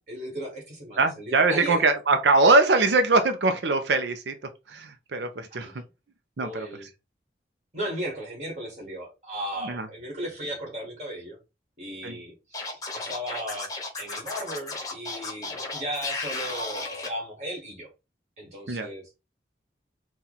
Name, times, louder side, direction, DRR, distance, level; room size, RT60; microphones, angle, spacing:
voice 1, 0.0-1.8 5.5-5.8 6.4-6.9 7.7-11.4 11.8-13.7 14.0-17.9 18.4-19.0, right 1 dB, 40° right, 2.0 m, -36 dB
voice 2, 1.0-5.8 6.4-6.9 9.6-9.9 12.0-12.2 18.7-18.9, right 3 dB, 75° right, 0.6 m, -23 dB
Scratching (performance technique), 12.5-17.1, left 3 dB, 20° left, 0.9 m, -34 dB
4.3 x 2.4 x 4.0 m
head